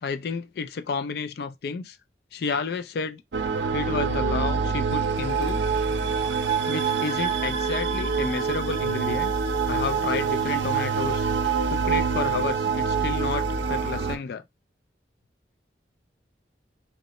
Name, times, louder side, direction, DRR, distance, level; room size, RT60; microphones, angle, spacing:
voice 1, 0.0-2.0 2.3-3.2 3.7-5.7 6.7-9.3 9.7-11.3 11.7-14.4, left 5 dB, 55° left, 0.3 m, -31 dB
sound 1, 3.3-14.2, right 5 dB, 85° right, 0.6 m, -25 dB
3.8 x 2.1 x 4.0 m
head